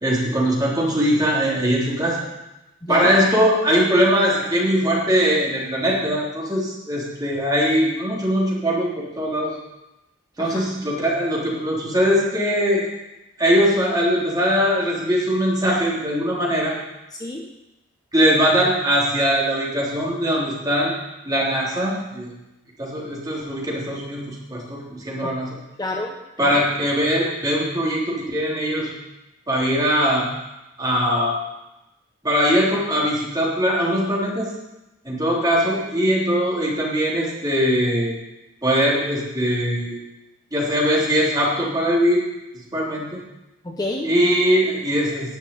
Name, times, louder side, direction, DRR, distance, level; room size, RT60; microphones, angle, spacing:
voice 1, 0.0-2.3 2.9-8.9 9.2-9.6 10.4-12.9 13.4-16.7 18.1-20.9 21.3-22.3 22.8-25.5 26.4-28.9 29.5-30.3 30.8-31.3 32.2-34.5 35.1-38.1 38.6-40.0 40.5-42.2 42.7-43.2 44.0-45.4, equal, 20° right, -5 dB, 3.5 m, -21 dB
voice 2, 2.8-3.1 10.4-10.6 17.1-17.4 25.2-25.3 25.8-26.6 43.6-44.1, left 2 dB, 20° left, 0 dB, 0.9 m, -29 dB
11.5 x 6.5 x 8.5 m, 0.98 s
head